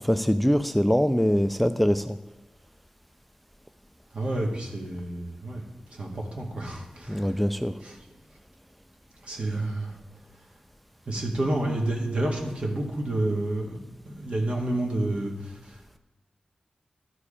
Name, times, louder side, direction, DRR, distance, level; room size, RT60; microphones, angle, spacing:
voice 1, 0.0-2.2 7.1-7.7, equal, ahead, 10 dB, 0.3 m, -23 dB
voice 2, 4.1-5.6 5.9-7.4 7.8-8.0 9.2-10.0 11.1-13.8 14.0-16.0, right 1 dB, 60° right, 0 dB, 1.9 m, -29 dB
12.0 x 4.9 x 4.9 m, 1.1 s
wide cardioid pair, 75°, 2 cm